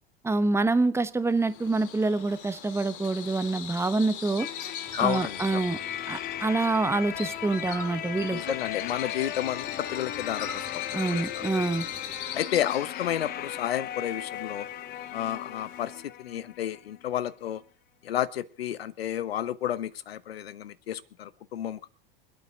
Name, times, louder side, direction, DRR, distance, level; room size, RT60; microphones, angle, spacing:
voice 1, 0.2-4.5 5.0-5.8 6.1-8.4 10.9-11.9, right 3 dB, 10° right, 1.0 m, -26 dB
Bird vocalization bird call bird song, 1.3-16.1, left 9 dB, 60° left, 2.0 m, -42 dB
sound 1, 4.4-17.0, left 12 dB, 30° left, 0.7 m, -37 dB
sound 2, 4.9-12.4, left 2 dB, 15° left, 2.2 m, -46 dB
voice 2, 5.0-5.6 8.3-11.2 12.3-14.7 15.1-15.9 16.2-17.6 18.0-21.9, left 11 dB, 85° left, 1.0 m, -31 dB
26.5 x 8.9 x 3.8 m
hypercardioid pair, 95°, 30 cm